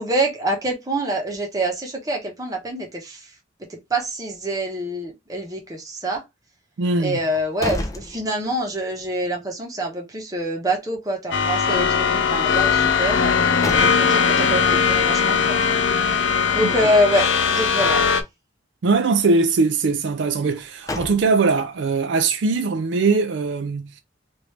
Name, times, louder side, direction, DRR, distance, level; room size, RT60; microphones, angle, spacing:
voice 1, 0.0-3.3 3.7-6.2 7.0-13.3 13.8-18.0, right 1 dB, 20° right, 1.0 m, -26 dB
voice 2, 6.8-7.2 16.6-16.7 18.8-24.0, right 4 dB, 70° right, 0.4 m, -21 dB
sound 1, 7.2-8.9 9.2-9.3 13.1-14.4 20.4-21.7, left 1 dB, 20° left, 0.5 m, -32 dB
sound 2, 11.3-18.2, left 6 dB, 75° left, 0.5 m, -19 dB
3.1 x 2.6 x 3.2 m
head